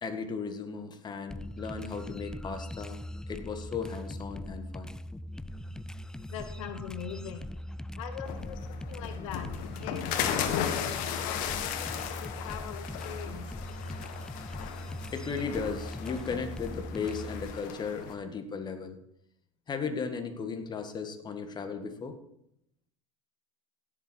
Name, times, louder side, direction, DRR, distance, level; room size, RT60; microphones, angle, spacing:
voice 1, 0.0-3.0 3.3-4.9 15.1-19.0 19.7-22.2, left 5 dB, 25° left, 6 dB, 1.7 m, -36 dB
sound 1, 1.3-17.6, left 1 dB, 5° left, 0.4 m, -41 dB
voice 2, 6.3-7.5 8.0-9.5 9.8-13.4, left 9 dB, 75° left, 9 dB, 1.1 m, -41 dB
sound 2, 8.2-18.1, left 9 dB, 55° left, 1.5 m, -36 dB
16.5 x 7.7 x 4.4 m, 0.75 s
hypercardioid pair, 95°, 17 cm